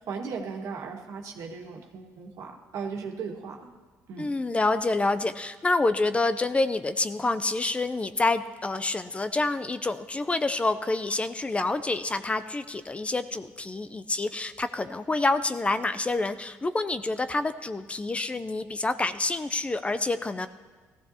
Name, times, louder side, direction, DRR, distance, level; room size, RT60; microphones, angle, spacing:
voice 1, 0.0-3.7 4.1-4.3, right 5 dB, 70° right, 1 dB, 1.7 m, -37 dB
voice 2, 4.2-20.5, left 2 dB, 20° left, 11 dB, 0.5 m, -27 dB
18.5 x 15.0 x 2.9 m, 1.4 s
cardioid pair, 95°, 6 cm